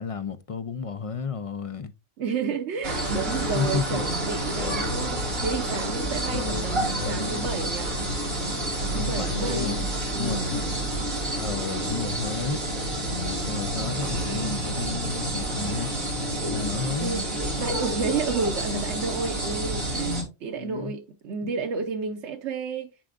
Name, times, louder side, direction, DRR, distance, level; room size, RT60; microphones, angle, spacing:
voice 1, 0.0-1.9 3.5-4.0 6.1-7.5 8.9-9.9 10.2-10.7 11.4-12.6 13.0-15.9 16.5-17.2 20.6-20.9 21.4-21.5, left 5 dB, 35° left, 0.6 m, -32 dB
voice 2, 2.2-8.0 8.8-10.5 16.9-22.9, right 5 dB, 85° right, 1.1 m, -31 dB
sound 1, 2.8-20.2, right 1 dB, 60° right, 2.6 m, -29 dB
10.0 x 4.9 x 2.5 m
omnidirectional pair, 1.1 m